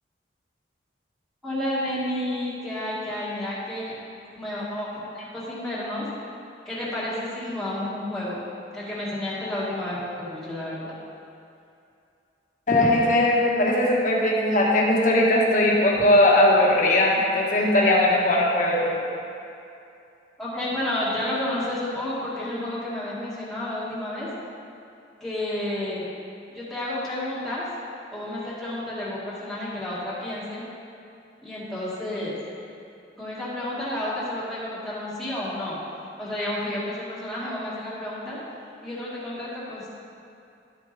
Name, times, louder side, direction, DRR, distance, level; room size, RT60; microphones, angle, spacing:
voice 1, 1.4-3.9 4.4-6.1 6.7-8.4 8.7-10.9 20.4-24.3 25.2-26.0 26.5-27.7 28.1-30.6 31.4-32.3 33.2-35.8 36.2-38.4 38.8-39.9, left 1 dB, ahead, -10 dB, 2.1 m, -31 dB
voice 2, 12.7-19.0, left 1 dB, 45° left, -3 dB, 1.4 m, -19 dB
12.0 x 8.3 x 3.5 m, 2.6 s
head